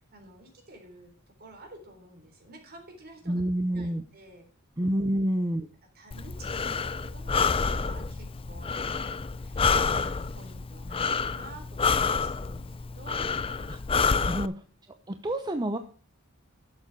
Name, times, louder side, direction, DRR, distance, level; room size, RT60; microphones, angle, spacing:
voice 1, 0.1-1.1 1.4-3.5 3.7-4.5 4.8-5.0 5.9-13.3, right 1 dB, 50° right, 4 dB, 3.6 m, -50 dB
voice 2, 3.3-4.0 4.8-5.7 13.6-13.8 14.2-14.5 15.1-15.8, right 1 dB, 20° right, 7 dB, 0.7 m, -28 dB
Breathing, 6.1-14.5, left 5 dB, 25° left, 0.4 m, -28 dB
12.5 x 7.1 x 4.6 m, 0.42 s
head